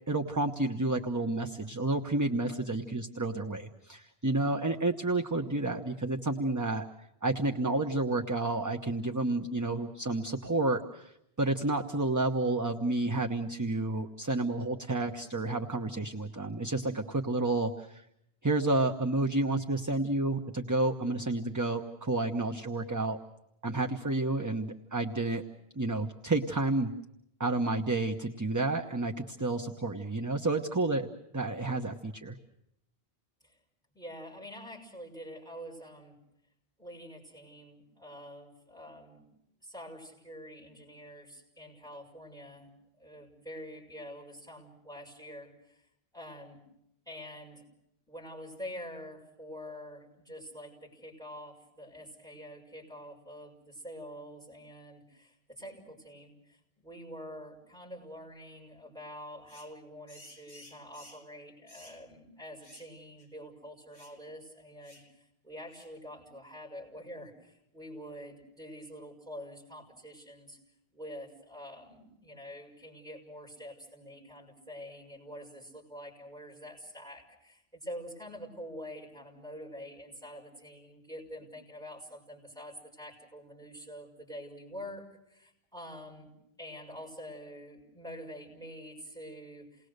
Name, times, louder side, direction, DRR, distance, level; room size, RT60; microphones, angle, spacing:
voice 1, 0.1-6.8 7.2-18.0 18.4-23.2 23.6-25.4 25.7-26.9 27.4-32.4, right 2 dB, 20° right, 4 dB, 0.8 m, -30 dB
voice 2, 33.9-36.2 36.8-39.2 39.6-42.7 43.0-45.9 46.1-46.6 47.1-47.6 48.1-70.6 70.9-86.3 86.6-89.9, equal, 5° left, -3 dB, 6.3 m, -46 dB
sound 1, 59.5-59.7 60.1-61.3 61.7-62.0 62.6-62.9 63.2-63.3 63.9-64.2 64.8-65.1 65.7-66.0, left 1 dB, 45° left, 2.8 m, -54 dB
29.0 x 19.5 x 6.6 m, 0.78 s
omnidirectional pair, 1.1 m